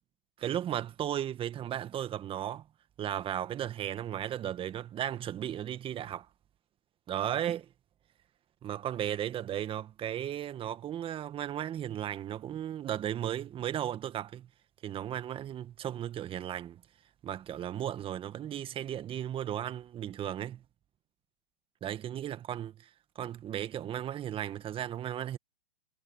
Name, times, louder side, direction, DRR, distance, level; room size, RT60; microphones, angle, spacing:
voice 1, 0.4-2.7 3.0-6.3 7.1-7.7 8.6-14.5 14.8-16.8 17.2-20.6 21.8-22.9 23.1-25.4, right 11 dB, 15° right, 1.6 m, -35 dB
hypercardioid pair, 135°, 34 cm